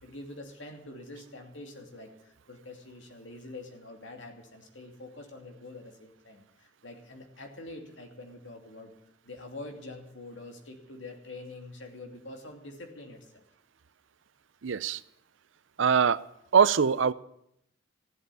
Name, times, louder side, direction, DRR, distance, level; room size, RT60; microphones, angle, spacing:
voice 1, 0.0-8.9 9.2-13.4, left 2 dB, 70° left, 4 dB, 2.7 m, -45 dB
voice 2, 14.6-15.0 15.8-16.2 16.5-17.1, right 6 dB, 75° right, 17 dB, 0.6 m, -22 dB
15.5 x 8.1 x 9.9 m, 0.76 s
head